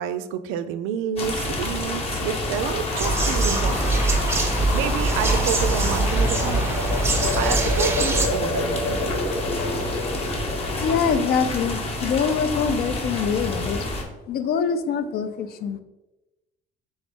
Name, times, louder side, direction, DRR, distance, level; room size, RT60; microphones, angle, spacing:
voice 1, 0.0-4.1 4.7-6.8 7.4-9.0, right 8 dB, 80° right, 11 dB, 0.4 m, -29 dB
sound 1, 1.2-14.0, left 2 dB, 30° left, 0.7 m, -29 dB
sound 2, 2.6-11.2, left 3 dB, 65° left, 1.0 m, -30 dB
sound 3, 3.0-8.3, right 2 dB, 10° right, 0.5 m, -23 dB
voice 2, 10.8-13.9 14.3-15.8, left 6 dB, 50° left, 10 dB, 0.4 m, -24 dB
3.9 x 3.4 x 3.6 m, 1.0 s
cardioid pair, 135°, 20 cm